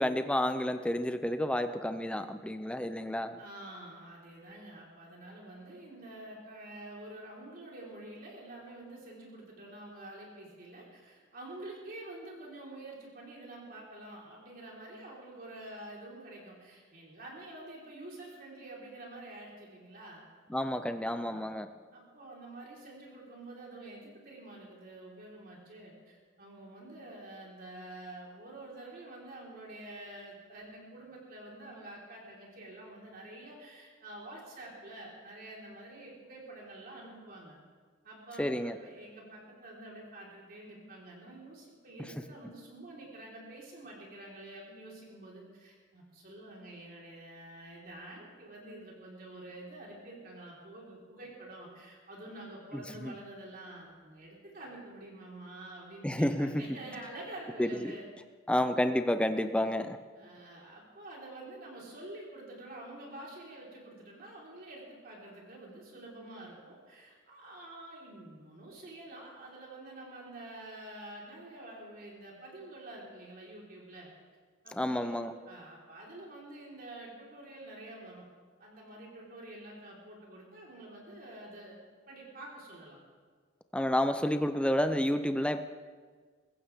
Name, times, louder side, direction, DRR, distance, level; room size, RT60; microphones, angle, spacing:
voice 1, 0.0-3.4 20.5-21.7 38.4-38.8 52.7-53.1 56.0-56.6 57.6-57.9 58.5-60.0 74.7-75.3 83.7-85.6, left 1 dB, 5° left, 9 dB, 0.5 m, -30 dB
voice 2, 3.4-20.2 21.3-21.6 21.9-37.6 38.0-58.1 59.6-59.8 60.1-74.1 74.6-78.3 78.6-81.8 82.1-83.0, right 1 dB, 45° right, -3 dB, 4.2 m, -48 dB
22.0 x 15.0 x 3.6 m, 1.5 s
head